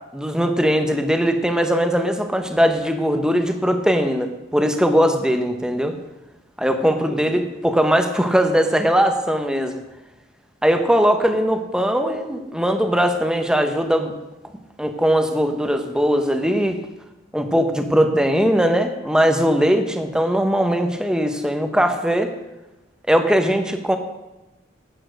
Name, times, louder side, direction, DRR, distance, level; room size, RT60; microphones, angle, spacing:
voice 1, 0.1-5.9 6.6-9.8 10.6-14.1 14.8-16.8 17.3-22.3 23.1-24.0, equal, 5° right, 6 dB, 0.9 m, -20 dB
11.5 x 8.7 x 6.3 m, 1.0 s
head